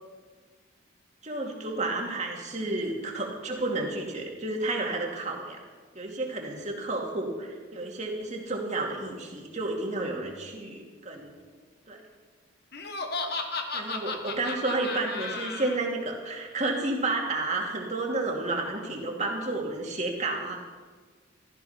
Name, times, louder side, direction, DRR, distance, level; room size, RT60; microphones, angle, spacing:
voice 1, 1.2-5.6 5.9-11.3 11.9-12.0 13.7-20.6, right 2 dB, 35° right, 0 dB, 2.5 m, -31 dB
Laughter, 12.7-15.8, left 3 dB, 50° left, 1.3 m, -34 dB
15.5 x 13.5 x 5.7 m, 1.5 s
head